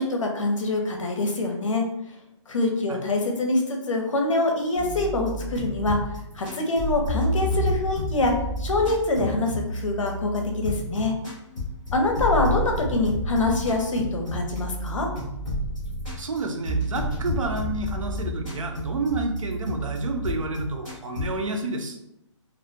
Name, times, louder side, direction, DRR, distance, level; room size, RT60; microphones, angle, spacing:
voice 1, 0.0-1.8 2.5-6.0 6.3-8.3 8.6-11.1 11.9-15.1, left 2 dB, 80° left, 2 dB, 0.7 m, -25 dB
sound 1, 4.7-21.3, equal, ahead, 0.4 m, -30 dB
voice 2, 16.2-22.0, right 3 dB, 85° right, 4 dB, 0.6 m, -29 dB
2.4 x 2.1 x 2.6 m, 0.83 s
hypercardioid pair, 180°, 16 cm